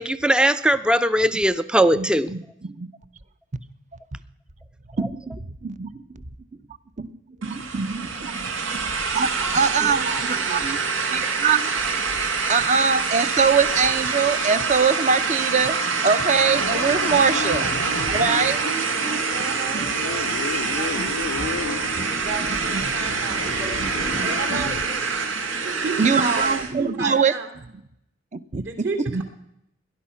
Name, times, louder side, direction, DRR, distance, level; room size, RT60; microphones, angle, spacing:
voice 1, 0.0-2.3, right 1 dB, 5° right, 13 dB, 0.5 m, -19 dB
voice 2, 1.9-2.9 5.0-6.2 7.0-10.8 11.1-11.7 12.5-17.7 18.1-18.6 19.1-19.4 19.7-19.9 20.6-21.1 21.4-22.2 22.5-24.7 25.3-25.4 26.0-27.3 28.3-29.2, right 5 dB, 40° right, 13 dB, 0.7 m, -24 dB
sound 1, 7.4-26.7, right 4 dB, 90° right, 1.8 m, -25 dB
voice 3, 9.4-10.7 11.2-11.3 16.7-17.2 17.6-25.3 25.6-27.5 28.5-29.2, right 3 dB, 60° right, 5 dB, 3.0 m, -34 dB
sound 2, 16.4-18.8 19.8-22.0 23.0-24.8, left 4 dB, 75° left, 0.6 m, -33 dB
18.0 x 11.0 x 5.7 m, 0.79 s
head